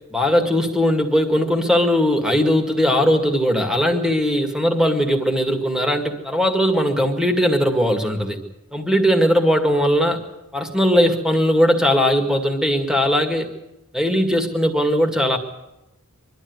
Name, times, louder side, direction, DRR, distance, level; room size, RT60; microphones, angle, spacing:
voice 1, 0.1-8.4 8.7-10.2 10.5-13.5 13.9-15.4, equal, 5° right, 4 dB, 2.0 m, -19 dB
24.0 x 12.5 x 9.5 m, 0.96 s
head